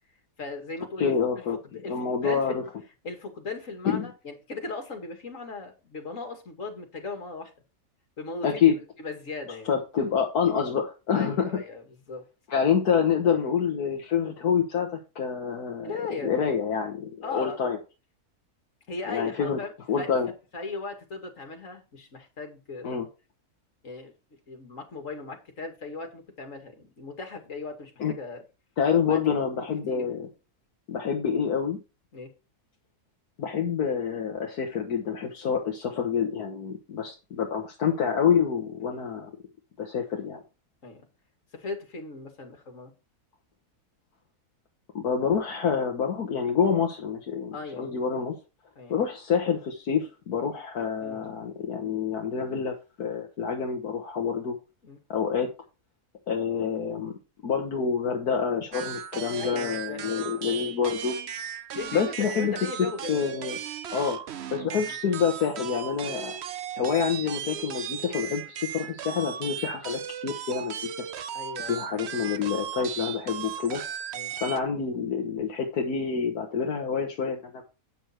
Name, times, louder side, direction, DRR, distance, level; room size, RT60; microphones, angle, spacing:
voice 1, 0.4-1.1 1.7-2.6 3.0-7.5 8.2-8.7 9.0-9.7 11.1-12.3 15.8-16.7 17.2-17.6 18.9-20.1 20.5-23.1 23.8-24.1 24.5-28.4 29.0-29.7 29.9-30.1 32.1-32.3 38.9-39.0 40.8-41.1 41.5-42.9 47.5-48.0 48.8-49.0 50.9-51.3 54.8-55.0 59.4-60.7 61.7-63.4 64.5-65.1 71.3-72.1 74.1-74.4, left 3 dB, 55° left, 2.7 m, -38 dB
voice 2, 1.0-1.6 1.9-2.6 3.9-4.1 8.4-8.8 9.7-11.5 12.5-15.9 16.2-17.8 19.1-19.6 19.9-20.3 22.8-23.0 28.0-28.1 28.8-30.3 30.9-31.8 33.4-39.3 39.8-40.4 45.0-48.4 48.9-54.6 55.1-55.5 56.3-57.1 57.4-61.2 61.9-62.5 63.1-63.6 63.9-64.2 64.5-66.4 66.8-70.7 71.7-73.8 74.4-77.6, left 7 dB, 75° left, 1.8 m, -27 dB
sound 1, 58.7-74.6, right 9 dB, 55° right, 0.8 m, -36 dB
9.0 x 6.5 x 4.4 m
omnidirectional pair, 1.6 m